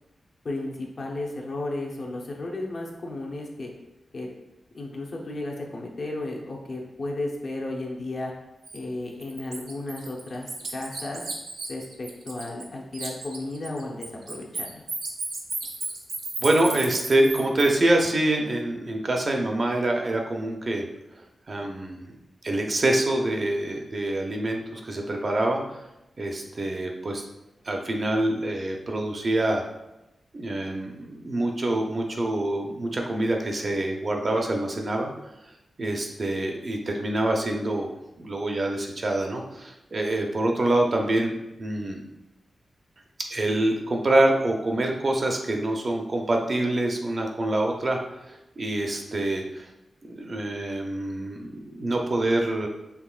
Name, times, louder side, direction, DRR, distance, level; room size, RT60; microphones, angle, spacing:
voice 1, 0.4-3.7 4.1-4.3 4.7-8.3 8.7-11.3 11.7-14.8, left 2 dB, 50° left, -1 dB, 0.8 m, -34 dB
Bird, 8.7-8.8 9.2-12.7 12.9-17.7, right 3 dB, 75° right, 0.7 m, -34 dB
voice 2, 16.4-20.9 21.2-22.1 22.4-25.8 26.2-27.2 27.6-29.6 30.3-35.1 35.8-37.9 38.2-42.0 43.3-48.0 48.2-49.7 50.1-52.7, right 1 dB, 40° right, 2 dB, 0.6 m, -26 dB
5.8 x 3.5 x 2.4 m, 0.94 s
wide cardioid pair, 140°, 0 cm